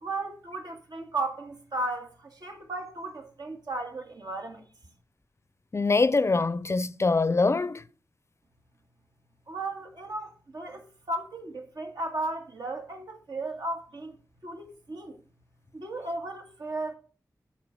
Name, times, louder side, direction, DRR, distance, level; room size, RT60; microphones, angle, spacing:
voice 1, 0.0-4.6 9.5-14.2 14.4-15.2 15.7-16.9, right 2 dB, 75° right, 1.7 m, -35 dB
voice 2, 5.7-7.8, left 3 dB, 40° left, 0.5 m, -24 dB
8.7 x 4.3 x 5.8 m
cardioid pair, 50°, 7 cm